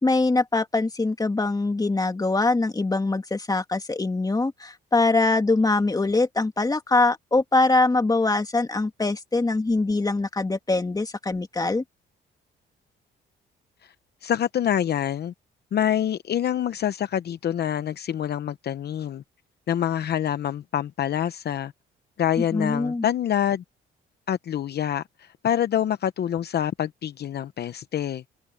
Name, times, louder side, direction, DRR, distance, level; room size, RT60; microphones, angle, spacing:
voice 1, 0.0-11.8 22.5-23.1, left 3 dB, 20° left, 2.3 m, -23 dB
voice 2, 14.2-15.3 15.7-19.2 19.7-21.7 22.2-23.6 24.3-28.2, left 10 dB, 55° left, 0.8 m, -26 dB
cardioid pair, 90°, 20 cm